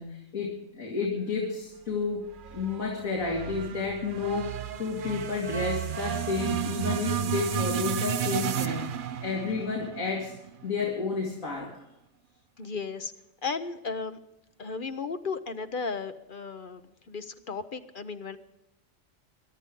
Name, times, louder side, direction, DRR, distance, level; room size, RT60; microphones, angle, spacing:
voice 1, 0.0-2.2 2.5-4.5 4.8-10.3 10.6-11.7, left 4 dB, 85° left, -2 dB, 2.9 m, -31 dB
sound 1, 2.3-10.7, right 8 dB, 50° right, 0.7 m, -32 dB
voice 2, 12.6-13.1 13.4-14.2 14.6-18.4, left 4 dB, 45° left, 10 dB, 0.8 m, -35 dB
22.5 x 11.5 x 3.7 m, 0.90 s
omnidirectional pair, 1.4 m